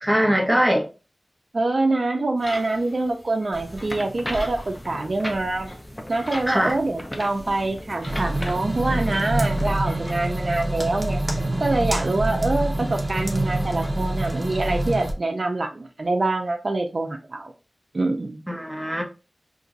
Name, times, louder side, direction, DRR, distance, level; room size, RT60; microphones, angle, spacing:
voice 1, 0.0-0.9 6.5-6.8 18.5-19.0, equal, 10° right, 1.0 m, -21 dB
voice 2, 1.5-5.7 6.1-11.2 11.6-17.5 17.9-18.4, right 2 dB, 65° right, 0.4 m, -25 dB
sound 1, 2.4-14.9, left 1 dB, 40° left, 1.7 m, -45 dB
sound 2, 3.5-9.8, equal, 20° left, 0.7 m, -36 dB
sound 3, 8.0-15.1, right 1 dB, 40° right, 0.8 m, -26 dB
2.9 x 2.5 x 3.8 m
wide cardioid pair, 45°, 0 cm